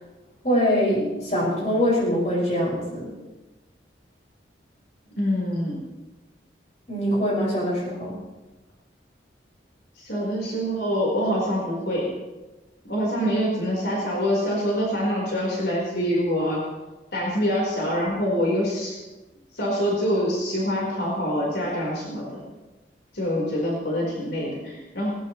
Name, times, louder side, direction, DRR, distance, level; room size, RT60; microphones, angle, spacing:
voice 1, 0.4-3.1 6.9-8.2, equal, 40° left, -5 dB, 6.1 m, -23 dB
voice 2, 5.2-5.8 10.0-12.1 12.8-16.6 17.1-19.0 19.5-22.4 23.1-25.1, equal, 70° left, -3 dB, 4.3 m, -25 dB
19.5 x 19.5 x 3.2 m, 1.1 s
head